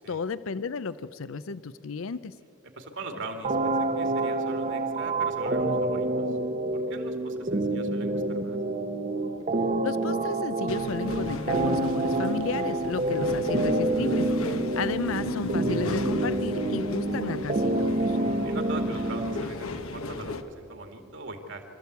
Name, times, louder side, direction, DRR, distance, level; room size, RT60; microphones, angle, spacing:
voice 1, 0.1-2.3 9.8-18.2, left 4 dB, 70° left, 15 dB, 0.5 m, -33 dB
voice 2, 2.8-6.4 6.7-8.6 13.0-13.2 18.4-21.6, right 2 dB, 60° right, 5 dB, 2.4 m, -41 dB
sound 1, 3.4-19.4, right 2 dB, 35° right, 0.9 m, -28 dB
sound 2, 10.7-20.4, left 2 dB, 85° left, 1.2 m, -35 dB
25.0 x 14.0 x 8.2 m, 3.0 s
head